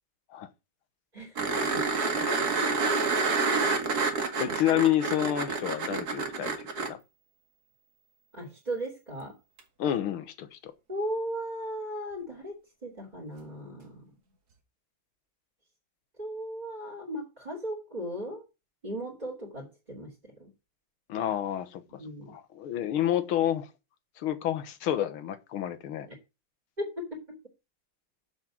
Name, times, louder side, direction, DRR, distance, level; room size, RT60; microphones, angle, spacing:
sound 1, 1.4-6.9 9.6-9.7, right 4 dB, 50° right, 2.2 m, -28 dB
voice 1, 1.7-2.2 4.4-4.5 8.3-9.4 10.9-12.5 12.8-14.1 16.2-18.4 18.8-20.1 20.4-20.5 22.0-22.3 26.8-27.1, equal, 20° right, 3.0 m, -36 dB
voice 2, 4.1-7.0 9.8-10.7 21.1-22.0 22.3-23.7 24.2-26.1, left 11 dB, 80° left, 1.9 m, -29 dB
7.2 x 7.1 x 7.7 m
omnidirectional pair, 2.3 m